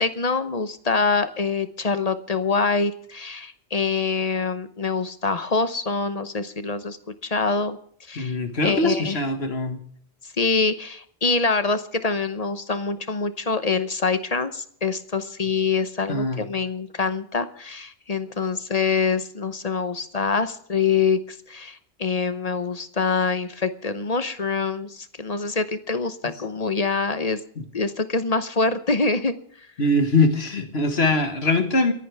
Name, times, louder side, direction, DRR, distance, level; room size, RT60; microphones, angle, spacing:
voice 1, 0.0-7.0 7.2-7.8 8.1-8.3 8.6-9.2 10.4-27.4 27.7-29.3, left 4 dB, 40° left, 11 dB, 0.9 m, -25 dB
voice 2, 8.2-9.8 16.1-16.4 29.8-31.9, left 2 dB, 90° left, 7 dB, 1.9 m, -22 dB
29.0 x 11.0 x 3.5 m, 0.64 s
omnidirectional pair, 1.0 m